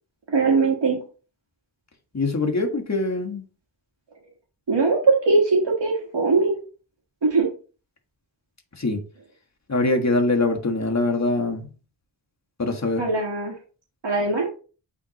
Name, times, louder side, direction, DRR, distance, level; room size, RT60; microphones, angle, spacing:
voice 1, 0.3-1.0 4.7-6.6 7.2-7.5 13.0-13.5 14.0-14.5, right 3 dB, 70° right, 1.5 m, -20 dB
voice 2, 2.1-3.4 8.8-9.0 9.7-11.7 12.6-13.0, left 2 dB, 35° left, 1.5 m, -23 dB
9.0 x 3.5 x 2.9 m
wide cardioid pair, 65°, 45 cm